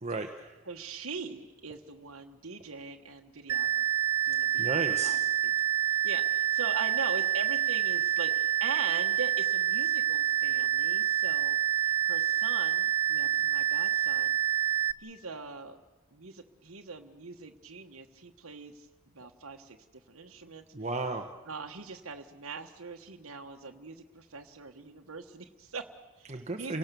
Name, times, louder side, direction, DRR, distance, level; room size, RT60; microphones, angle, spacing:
voice 1, 0.0-0.6 4.6-5.2 20.7-21.3 26.3-26.8, right 3 dB, 30° right, 5 dB, 1.1 m, -34 dB
voice 2, 0.7-3.8 4.2-5.5 5.8-14.4 15.0-15.8 16.1-18.9 19.1-19.8 20.1-20.7 21.5-26.8, right 4 dB, 70° right, 3 dB, 1.3 m, -42 dB
sound 1, 3.5-14.9, right 10 dB, 90° right, 0.9 m, -27 dB
29.5 x 18.0 x 6.9 m, 1.3 s
head